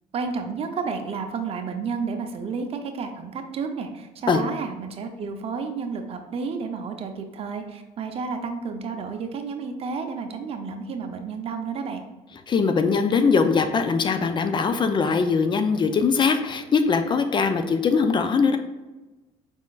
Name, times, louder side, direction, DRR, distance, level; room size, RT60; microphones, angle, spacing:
voice 1, 0.1-12.0, right 5 dB, 45° right, 5 dB, 0.7 m, -31 dB
voice 2, 12.5-18.6, left 5 dB, 35° left, 8 dB, 0.5 m, -21 dB
5.1 x 3.7 x 2.4 m, 1.1 s
cardioid pair, 95°, 14 cm